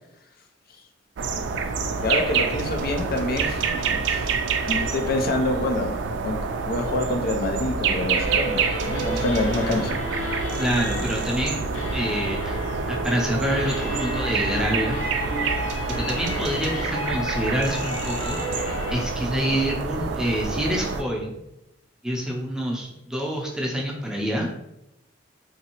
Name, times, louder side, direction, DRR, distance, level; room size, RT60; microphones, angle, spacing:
sound 1, 1.2-21.0, right 5 dB, 70° right, 0.3 m, -27 dB
voice 1, 2.0-6.0 6.2-10.0, left 2 dB, 55° left, 4 dB, 0.4 m, -27 dB
sound 2, 8.0-19.1, equal, 85° left, 0.8 m, -32 dB
voice 2, 10.5-11.6 11.9-12.6 12.9-15.0 16.0-18.4 18.9-21.4 22.0-24.5, equal, 5° right, -2 dB, 0.5 m, -27 dB
3.8 x 2.6 x 2.9 m, 0.88 s
head